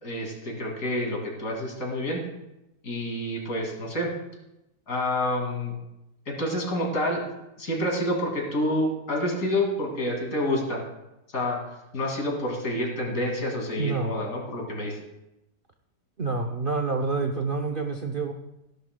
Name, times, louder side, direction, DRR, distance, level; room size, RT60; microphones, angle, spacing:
voice 1, 0.0-2.2 2.8-4.1 4.9-5.7 6.3-7.2 7.6-10.8 11.3-11.6 11.9-15.0, left 1 dB, 50° left, -1 dB, 2.9 m, -28 dB
voice 2, 13.8-14.1 16.2-18.3, right 4 dB, 75° right, 4 dB, 0.5 m, -27 dB
16.0 x 11.0 x 2.2 m, 0.93 s
omnidirectional pair, 1.9 m